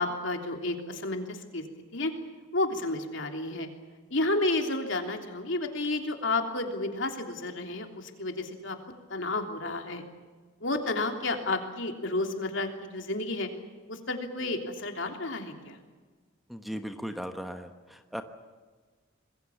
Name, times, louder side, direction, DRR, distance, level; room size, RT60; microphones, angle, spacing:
voice 1, 0.0-1.6 1.9-2.1 2.5-3.7 4.1-8.8 9.1-10.0 10.6-13.5 13.9-15.8, left 2 dB, 65° left, 4 dB, 3.3 m, -31 dB
voice 2, 16.5-17.7 18.1-18.2, equal, ahead, 6 dB, 1.1 m, -36 dB
26.5 x 21.5 x 7.2 m, 1.4 s
head